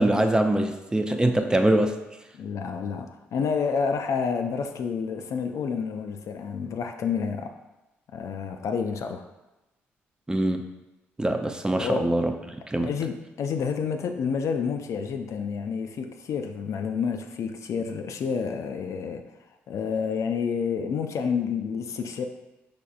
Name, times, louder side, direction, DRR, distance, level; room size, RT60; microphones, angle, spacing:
voice 1, 0.0-1.9 10.3-10.6 11.2-12.3 12.7-12.9, right 1 dB, 10° right, 5 dB, 0.4 m, -23 dB
voice 2, 2.3-7.5 8.1-9.2 11.8-12.1 12.8-19.2 19.7-22.2, left 6 dB, 60° left, 6 dB, 0.4 m, -29 dB
5.0 x 3.3 x 2.3 m, 1.0 s
hypercardioid pair, 45°, 6 cm